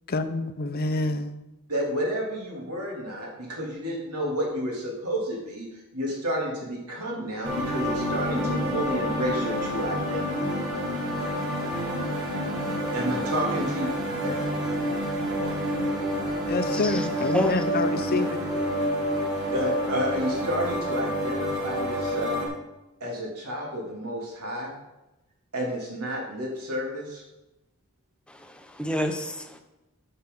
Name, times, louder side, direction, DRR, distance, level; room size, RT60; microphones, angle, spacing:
voice 1, 0.1-1.4 16.5-18.4, left 3 dB, 45° left, 0.7 m, -27 dB
voice 2, 1.7-5.7 5.9-10.4 12.9-13.9 14.2-14.4 19.5-22.4 23.0-24.7 25.5-27.2, equal, 85° right, 2.8 m, -30 dB
sound 1, 7.4-22.5, equal, 55° right, 3.1 m, -28 dB
voice 3, 17.3-17.7 28.3-29.6, equal, 5° left, 0.8 m, -29 dB
11.5 x 6.7 x 3.8 m
head